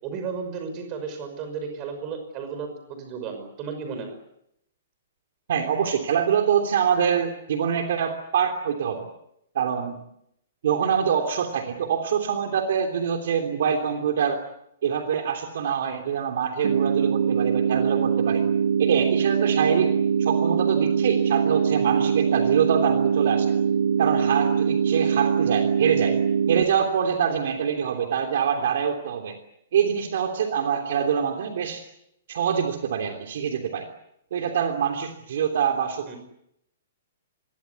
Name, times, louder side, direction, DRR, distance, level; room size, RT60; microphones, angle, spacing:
voice 1, 0.0-4.2 36.1-36.2, right 5 dB, 20° right, 6 dB, 5.7 m, -34 dB
voice 2, 5.5-9.1 9.5-10.0 10.6-14.4 14.8-18.4 18.8-19.9 20.2-23.5 24.0-26.2 26.5-29.4 29.7-31.8 32.3-33.8 34.3-36.1, right 7 dB, 55° right, 5 dB, 3.1 m, -25 dB
sound 1, 16.6-26.6, right 7 dB, 90° right, 1.1 m, -23 dB
28.0 x 22.5 x 8.3 m, 0.79 s
hypercardioid pair, 175°, 0 cm